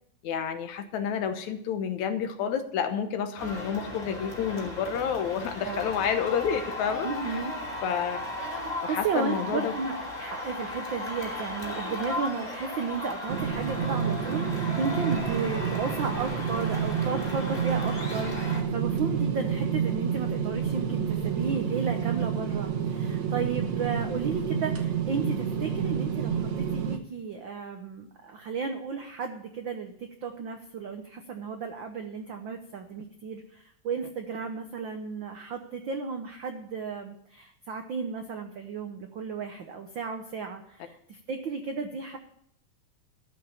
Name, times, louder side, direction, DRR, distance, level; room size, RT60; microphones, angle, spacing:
voice 1, 0.2-7.4 7.8-8.2 8.8-9.7, left 7 dB, 70° left, 8 dB, 2.2 m, -29 dB
sound 1, 3.4-18.6, left 2 dB, 15° left, 2.5 m, -36 dB
voice 2, 7.0-7.5 8.9-42.2, right 5 dB, 90° right, 5 dB, 1.0 m, -34 dB
sound 2, 13.3-27.0, right 7 dB, 65° right, 2.3 m, -29 dB
13.0 x 5.7 x 8.6 m, 0.69 s
omnidirectional pair, 3.5 m